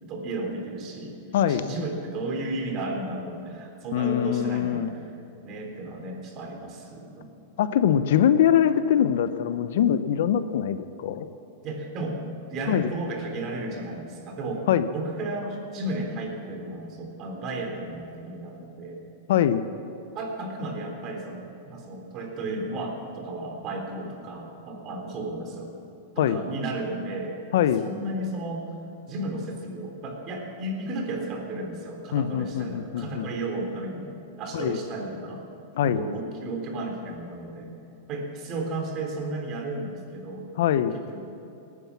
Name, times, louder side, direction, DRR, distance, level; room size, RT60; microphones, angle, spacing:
voice 1, 0.0-1.2 1.5-4.9 5.4-7.3 11.6-12.2 12.5-19.0 20.1-25.7 26.2-27.4 27.8-28.7 29.1-35.5 35.8-37.7 38.1-40.5 40.9-41.3, right 2 dB, 40° right, 2 dB, 3.5 m, -33 dB
voice 2, 1.3-1.7 3.9-4.9 7.6-11.3 12.7-12.9 14.7-14.9 19.3-19.6 26.2-26.4 27.5-27.9 32.1-33.3 34.5-34.8 35.7-36.1 40.6-41.0, left 10 dB, 70° left, 12 dB, 0.8 m, -23 dB
18.5 x 9.8 x 7.1 m, 2.8 s
hypercardioid pair, 115°, 0 cm